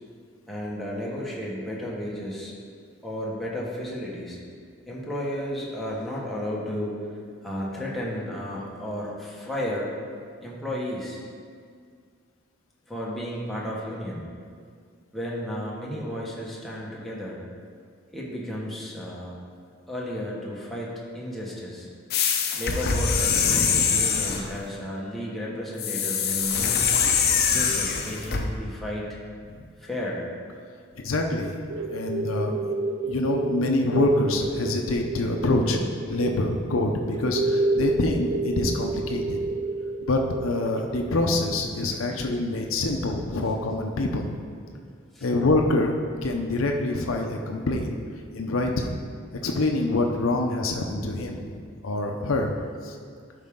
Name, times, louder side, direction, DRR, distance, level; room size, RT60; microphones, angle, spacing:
voice 1, 0.5-2.5 3.0-4.4 4.8-7.0 7.4-9.9 10.4-11.2 12.9-14.2 15.1-17.4 18.1-19.4 19.9-21.9 22.6-27.0 27.5-29.2 29.8-30.3 45.1-45.3, equal, ahead, -6 dB, 1.3 m, -33 dB
sound 1, 22.1-24.5 25.8-28.4, left 6 dB, 50° left, 0.7 m, -23 dB
voice 2, 23.3-23.9 27.5-27.6 29.5-29.7 31.0-32.5 33.1-35.8 36.1-39.4 40.1-44.4 45.2-45.9 46.2-48.0 48.3-49.0 49.4-51.6 51.8-52.5 52.8-53.0, left 2 dB, 85° left, 2 dB, 0.7 m, -26 dB
sound 2, 31.7-41.5, right 2 dB, 60° right, 0.6 m, -30 dB
11.5 x 4.9 x 3.7 m, 2.1 s
head